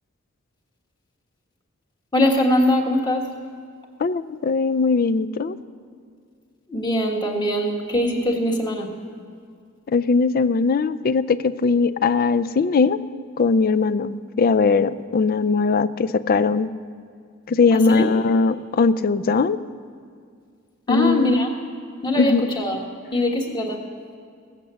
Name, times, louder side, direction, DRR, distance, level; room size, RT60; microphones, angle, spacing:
voice 1, 2.1-3.3 6.7-8.9 17.7-18.1 20.9-21.5 22.0-22.8 23.1-23.8, left 1 dB, 20° left, 0 dB, 1.4 m, -22 dB
voice 2, 4.0-5.6 9.9-13.0 13.4-16.7 17.5-19.6 20.9-21.5 22.1-22.4, left 4 dB, 45° left, 16 dB, 0.4 m, -20 dB
16.0 x 8.3 x 6.8 m, 2.2 s
head